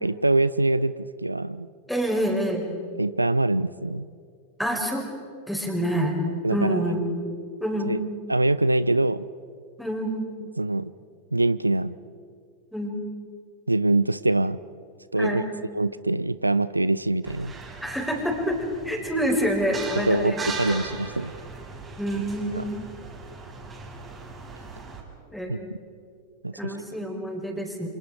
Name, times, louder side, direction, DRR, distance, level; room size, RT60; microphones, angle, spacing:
voice 1, 0.0-1.7 3.0-4.1 6.4-6.8 7.9-8.0 8.3-9.3 10.6-10.9 11.3-11.9 13.7-14.6 15.1-15.4 15.7-17.5 20.0-21.3 22.6-22.7 25.5-25.6 26.4-26.7, right 2 dB, 85° right, 17 dB, 0.5 m, -24 dB
voice 2, 1.9-2.7 4.6-5.1 5.5-6.2 6.5-7.0 7.6-8.1 9.8-10.3 12.7-13.0 15.2-15.5 17.8-20.8 22.0-22.7 25.3-25.7 26.5-27.9, equal, ahead, 2 dB, 5.0 m, -27 dB
sound 1, 17.2-25.0, right 3 dB, 20° right, 5.2 m, -39 dB
28.5 x 27.0 x 4.9 m, 2.3 s
figure-of-eight pair, 90°, 0 cm